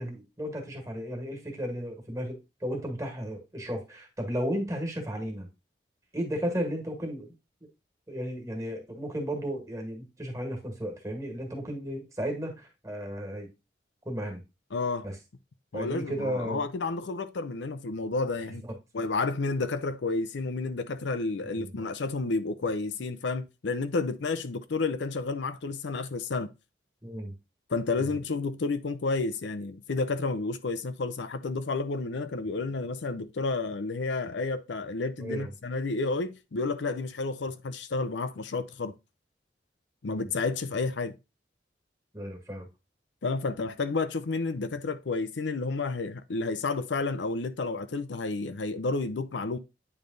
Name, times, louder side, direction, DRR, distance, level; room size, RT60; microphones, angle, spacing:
voice 1, 0.0-5.5 6.1-7.3 8.1-13.5 14.1-14.4 15.0-15.1 15.7-16.6 21.6-21.7 27.0-27.3 28.0-28.2 35.2-35.5 40.1-40.3 42.1-42.7, equal, 20° right, 1.8 m, -34 dB
voice 2, 14.7-15.1 15.7-18.6 18.9-26.5 27.7-38.9 40.0-41.2 43.2-49.6, left 3 dB, 90° left, 0.6 m, -31 dB
8.7 x 3.3 x 3.8 m
head